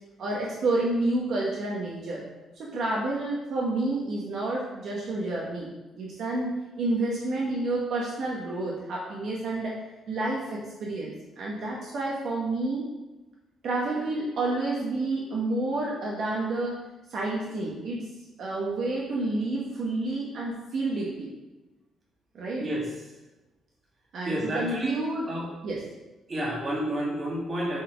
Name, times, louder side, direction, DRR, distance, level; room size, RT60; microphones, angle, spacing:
voice 1, 0.2-2.2 2.6-5.7 6.0-6.5 6.8-9.8 10.1-12.9 13.6-16.8 17.1-18.1 18.4-21.3 22.3-22.7 24.1-25.3 25.6-25.8, right 2 dB, 50° right, -4 dB, 1.2 m, -29 dB
voice 2, 24.3-25.0 25.3-25.5 26.3-27.8, right 1 dB, 25° right, -4 dB, 1.8 m, -30 dB
7.4 x 4.3 x 5.1 m, 1.1 s
cardioid pair, 180°, 0 cm